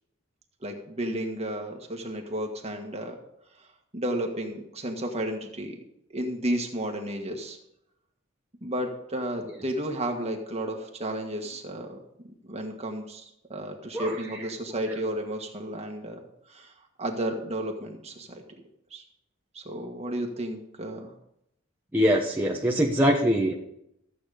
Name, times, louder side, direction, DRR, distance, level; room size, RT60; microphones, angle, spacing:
voice 1, 0.6-3.1 3.9-5.7 6.1-7.6 8.6-12.0 12.5-16.2 16.5-16.7 17.0-18.4 18.9-19.0 19.5-21.1, right 1 dB, 30° right, 2 dB, 1.7 m, -32 dB
voice 2, 13.9-14.5 14.9-15.0 21.9-23.5, equal, 10° right, -3 dB, 1.1 m, -24 dB
14.5 x 8.5 x 5.1 m, 0.79 s
head